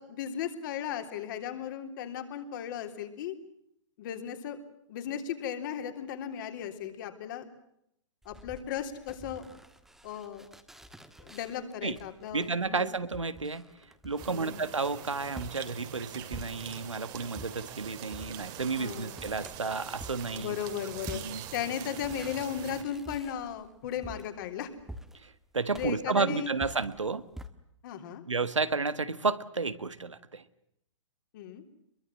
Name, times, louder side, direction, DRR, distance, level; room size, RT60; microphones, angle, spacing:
voice 1, 0.0-3.4 4.0-4.6 4.9-7.4 8.3-9.4 10.0-10.5 11.2-12.9 14.3-14.6 18.8-19.2 20.4-21.2 21.5-24.7 25.7-26.5 27.8-28.2 31.3-31.6, left 9 dB, 40° left, 7 dB, 3.4 m, -36 dB
sound 1, 8.2-17.0 17.3-27.5, equal, ahead, 1.5 m, -48 dB
voice 2, 12.3-13.7 14.0-20.6 21.1-21.4 25.1-27.3 28.3-30.4, right 4 dB, 80° right, 14 dB, 1.6 m, -32 dB
sound 2, 14.2-22.8, right 11 dB, 30° right, 2.3 m, -44 dB
25.5 x 22.5 x 7.5 m, 0.76 s
figure-of-eight pair, 125°, 16 cm